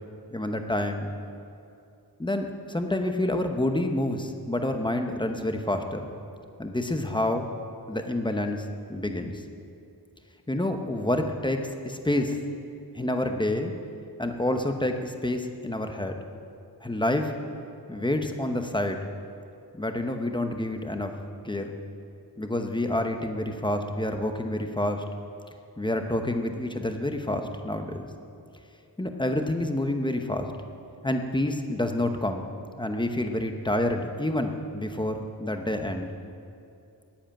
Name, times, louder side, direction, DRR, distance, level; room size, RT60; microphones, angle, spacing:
voice 1, 0.3-1.1 2.2-6.2 6.6-7.5 7.9-9.4 10.5-12.4 12.9-13.7 14.2-16.2 16.8-17.3 17.9-19.0 19.8-21.1 21.4-21.8 22.4-25.0 25.8-28.1 29.0-30.5 31.0-32.5 32.8-36.1, left 1 dB, 10° left, 5 dB, 0.8 m, -28 dB
10.0 x 10.0 x 8.8 m, 2.6 s
wide cardioid pair, 160°, 42 cm